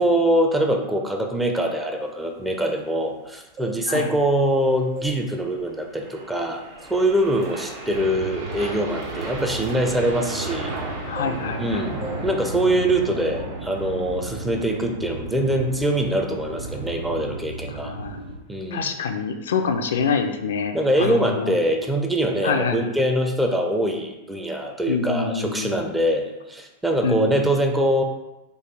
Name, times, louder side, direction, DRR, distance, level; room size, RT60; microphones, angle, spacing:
voice 1, 0.0-6.6 6.9-10.8 11.6-17.9 18.5-18.9 20.7-28.0, right 1 dB, 5° right, 3 dB, 0.5 m, -23 dB
sound 1, 2.4-3.2 3.5-4.6 5.0-5.3 5.7-5.9 6.5-6.7 7.0-10.9 11.1-11.7 12.0-12.3 12.6-12.8, equal, 35° right, 1.0 m, -40 dB
sound 2, 4.1-17.4, right 2 dB, 50° right, 0.7 m, -37 dB
sound 3, 7.9-18.4, right 2 dB, 75° right, 0.5 m, -35 dB
voice 2, 11.1-11.8 17.7-18.2 18.7-21.6 22.4-22.9 24.9-25.9 27.0-27.5, left 5 dB, 60° left, 6 dB, 0.3 m, -26 dB
4.7 x 2.3 x 3.4 m, 0.97 s
figure-of-eight pair, 90°, 0 cm